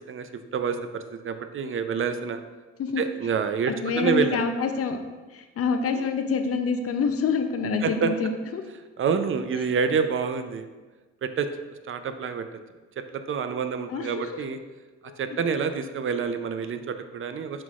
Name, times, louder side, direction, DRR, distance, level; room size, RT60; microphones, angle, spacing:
voice 1, 0.1-2.4 3.0-4.4 5.9-6.1 7.8-8.1 9.0-10.7 11.2-12.5 13.0-14.6 15.2-17.6, right 6 dB, 45° right, 9 dB, 0.6 m, -28 dB
voice 2, 3.7-5.0 5.3-8.6 13.9-14.3 15.1-15.2, left 5 dB, 50° left, 6 dB, 0.7 m, -27 dB
11.0 x 4.0 x 2.4 m, 1.3 s
cardioid pair, 90°, 30 cm